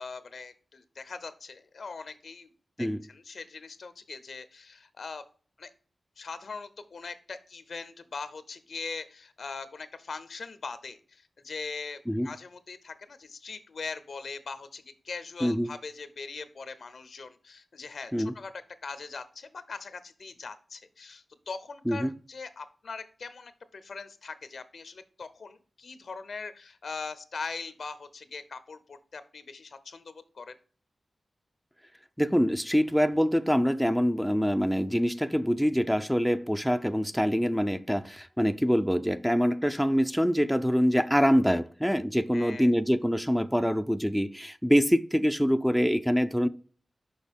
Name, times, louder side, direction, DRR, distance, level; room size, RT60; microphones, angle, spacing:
voice 1, 0.0-2.5 2.8-5.2 5.6-5.7 6.2-30.6 42.3-42.7, left 4 dB, 75° left, 0.8 m, -41 dB
voice 2, 32.2-46.5, equal, ahead, 0.5 m, -25 dB
6.4 x 5.2 x 5.2 m
cardioid pair, 65°, 0 cm